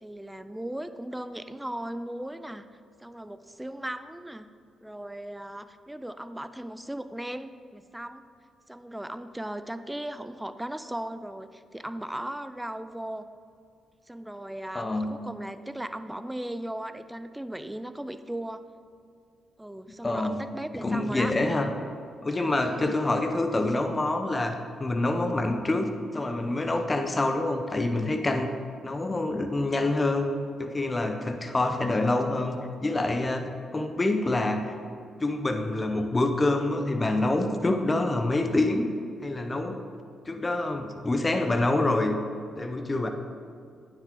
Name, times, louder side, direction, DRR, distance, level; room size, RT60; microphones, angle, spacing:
voice 1, 0.0-2.7 3.0-4.5 4.8-8.2 8.7-13.3 14.1-18.6 19.6-21.4 22.6-23.0, right 1 dB, 10° right, 12 dB, 0.4 m, -37 dB
voice 2, 14.7-15.2 20.0-20.4 20.7-21.7 22.2-28.5 28.8-30.3 30.6-34.8 35.2-38.9 39.2-39.8 40.3-42.2 42.6-43.1, left 2 dB, 30° left, 6 dB, 0.8 m, -26 dB
9.6 x 7.5 x 3.8 m, 2.3 s
hypercardioid pair, 45°, 0 cm